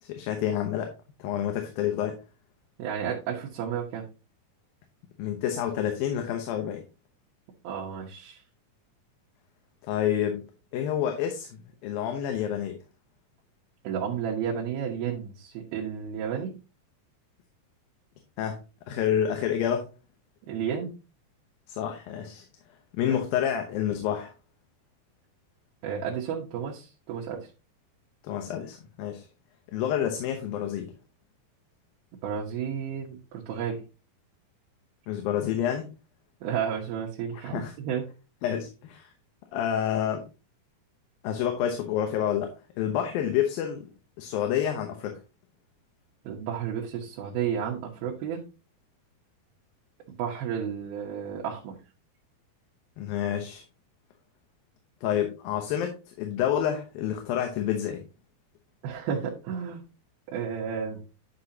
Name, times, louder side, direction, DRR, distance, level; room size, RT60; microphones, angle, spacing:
voice 1, 0.0-0.9 1.2-2.2 5.2-6.8 9.9-10.5 10.7-11.5 11.8-12.8 18.4-18.6 18.9-19.9 21.7-22.5 22.9-24.3 28.2-29.3 29.7-30.9 35.1-35.8 37.5-37.7 38.4-39.1 39.5-40.2 41.2-43.9 44.2-45.2 53.0-53.6 55.0-58.0, left 10 dB, 75° left, 4 dB, 2.7 m, -28 dB
voice 2, 2.8-4.0 7.6-8.4 13.8-16.5 20.5-20.9 23.0-23.2 25.8-27.5 32.2-33.8 36.4-38.1 46.2-48.4 50.2-51.8 58.8-59.8 60.3-61.0, right 8 dB, 90° right, -2 dB, 3.1 m, -32 dB
10.5 x 6.2 x 2.8 m, 0.30 s
omnidirectional pair, 4.3 m